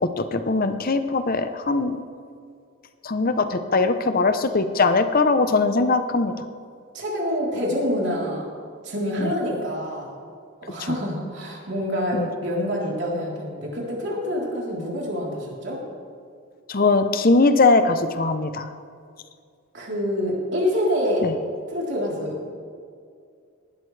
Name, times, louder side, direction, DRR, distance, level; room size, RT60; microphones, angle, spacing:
voice 1, 0.2-2.0 3.0-6.3 9.2-9.3 12.1-12.3 16.7-18.7 21.2-21.3, left 3 dB, 40° left, 9 dB, 0.7 m, -20 dB
voice 2, 6.9-8.5 8.8-10.2 10.7-15.8 19.7-21.3 21.7-22.5, equal, 50° right, -4 dB, 3.6 m, -26 dB
18.0 x 12.5 x 3.3 m, 2.3 s
head